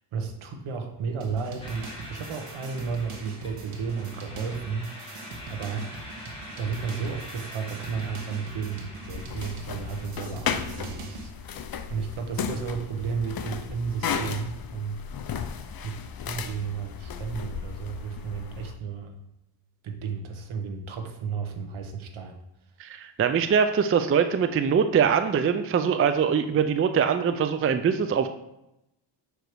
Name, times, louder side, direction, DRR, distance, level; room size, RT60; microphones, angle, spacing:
voice 1, 0.1-5.9 6.6-15.0 15.8-16.0 16.2-19.2 19.8-22.4 22.9-23.0, right 5 dB, 70° right, 5 dB, 1.2 m, -33 dB
sound 1, 1.2-11.3, right 2 dB, 90° right, 1.4 m, -42 dB
sound 2, 1.6-10.1, equal, 10° left, 1.8 m, -44 dB
sound 3, 9.0-18.8, left 7 dB, 45° left, 0.6 m, -35 dB
voice 2, 22.8-28.3, right 7 dB, 30° right, 9 dB, 0.4 m, -23 dB
6.5 x 5.0 x 4.6 m, 0.87 s
cardioid pair, 105°, 50 cm